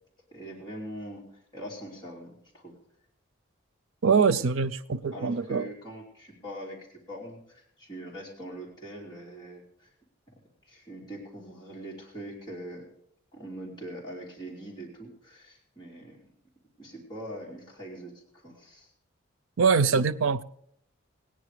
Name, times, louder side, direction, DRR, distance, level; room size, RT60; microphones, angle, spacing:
voice 1, 0.3-2.8 5.1-6.8 7.1-9.9 10.6-12.9 13.3-16.2 16.8-18.9, right 1 dB, 20° left, 3.0 m, -42 dB
voice 2, 4.0-5.7 19.6-20.4, right 5 dB, 90° right, 0.5 m, -23 dB
17.5 x 10.0 x 4.9 m
head